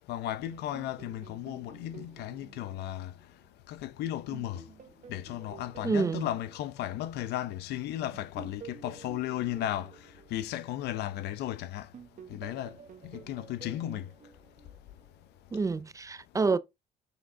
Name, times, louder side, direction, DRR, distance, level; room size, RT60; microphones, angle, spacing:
voice 1, 0.1-3.1 3.7-4.6 5.1-9.9 10.3-11.9 12.3-12.8 13.0-14.1, left 13 dB, 75° left, 0.6 m, -35 dB
sound 1, 0.5-3.9 4.3-7.6 8.1-11.5 11.9-15.2, right 7 dB, 50° right, 1.3 m, -51 dB
voice 2, 5.8-6.3 15.5-16.6, right 4 dB, 20° right, 0.4 m, -28 dB
6.8 x 4.8 x 3.5 m
cardioid pair, 110°, 17 cm